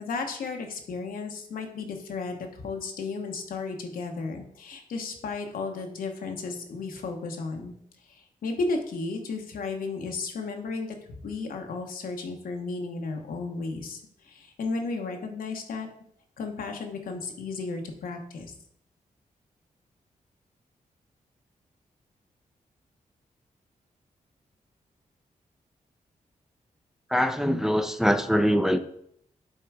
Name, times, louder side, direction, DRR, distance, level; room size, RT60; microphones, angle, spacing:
voice 1, 0.0-7.7 8.1-11.0 11.2-15.9 16.4-18.5, left 3 dB, 85° left, 1.0 m, -34 dB
voice 2, 27.1-28.8, equal, 5° right, 0.5 m, -23 dB
6.8 x 3.7 x 4.7 m
cardioid pair, 65°, 14 cm